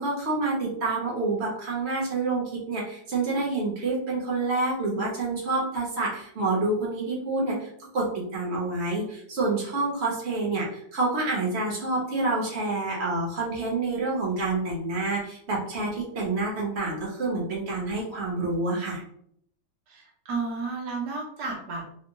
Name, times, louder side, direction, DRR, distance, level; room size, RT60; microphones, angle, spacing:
voice 1, 0.0-19.0, right 3 dB, 45° right, -3 dB, 1.1 m, -28 dB
voice 2, 19.9-21.8, right 4 dB, 70° right, -1 dB, 1.4 m, -32 dB
3.4 x 2.1 x 2.9 m, 0.69 s
omnidirectional pair, 1.9 m